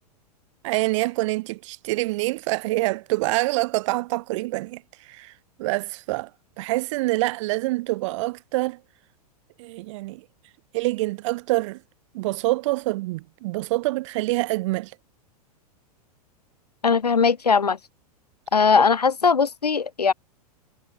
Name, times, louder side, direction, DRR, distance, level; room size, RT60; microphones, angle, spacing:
voice 1, 0.6-5.3 5.6-6.3 6.6-8.8 9.6-10.2 10.7-11.8 12.1-14.9, right 20 dB, 50° right, 4.6 m, -26 dB
voice 2, 16.8-17.8 18.5-20.1, left 5 dB, 75° left, 2.1 m, -19 dB
figure-of-eight pair, 95°, 20 cm